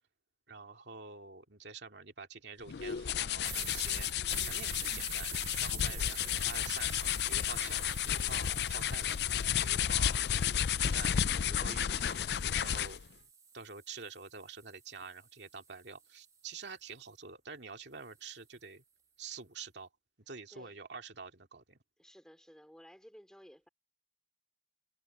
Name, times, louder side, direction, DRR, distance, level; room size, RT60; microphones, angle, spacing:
voice 1, 0.5-4.1 4.4-5.3 5.6-6.2 6.4-9.1 9.6-12.2 12.6-13.0 13.5-18.8 19.2-19.9 20.3-21.8, right 5 dB, 80° right, 2.3 m, -47 dB
sound 1, 2.7-13.1, left 9 dB, 70° left, 0.4 m, -32 dB
sound 2, 3.4-11.5 12.0-16.2, right 6 dB, 20° right, 1.4 m, -48 dB
voice 2, 5.9-6.5 20.5-20.8 22.0-23.7, equal, 5° left, 3.1 m, -56 dB
head